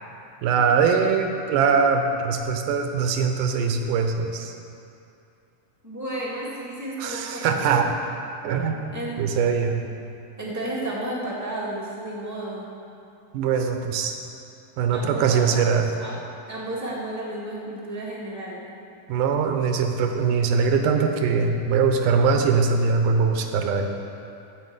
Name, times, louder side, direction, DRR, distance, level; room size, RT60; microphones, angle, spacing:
voice 1, 0.4-4.5 7.0-7.9 8.4-8.9 9.2-9.8 13.3-14.2 14.8-15.9 19.1-23.9, right 5 dB, 80° right, 5 dB, 2.4 m, -22 dB
voice 2, 5.8-7.9 8.5-9.1 10.4-12.7 14.9-15.5 16.0-16.2 16.5-18.6, right 1 dB, 15° right, -6 dB, 0.7 m, -32 dB
14.5 x 5.3 x 8.0 m, 2.6 s
omnidirectional pair, 3.8 m